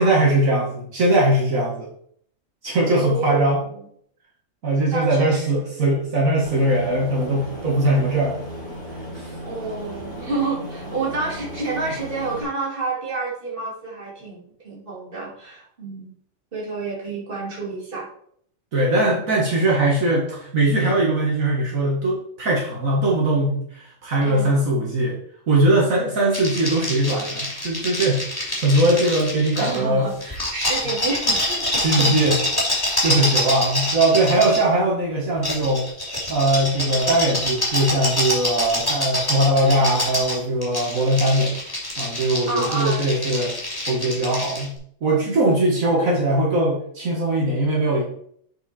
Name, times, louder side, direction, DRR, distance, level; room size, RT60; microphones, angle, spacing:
voice 1, 0.0-1.9 2.6-3.6 4.6-8.4 9.1-9.3 18.7-25.2 25.5-30.1 31.7-32.3 32.8-35.9 36.3-41.6 42.0-43.5 43.9-44.7 45.0-48.0, right 1 dB, 70° right, -3 dB, 2.0 m, -20 dB
voice 2, 2.8-3.7 4.8-5.7 9.4-16.1 16.5-18.1 24.2-24.5 29.6-32.3 42.5-43.1, right 3 dB, 40° right, -3 dB, 2.5 m, -29 dB
Aircraft, 6.4-12.4, equal, 15° right, 3.6 m, -35 dB
sound 1, 26.3-29.8 30.2-34.6 35.4-44.7, left 1 dB, 15° left, 2.7 m, -26 dB
8.0 x 5.1 x 4.3 m, 0.64 s
omnidirectional pair, 1.5 m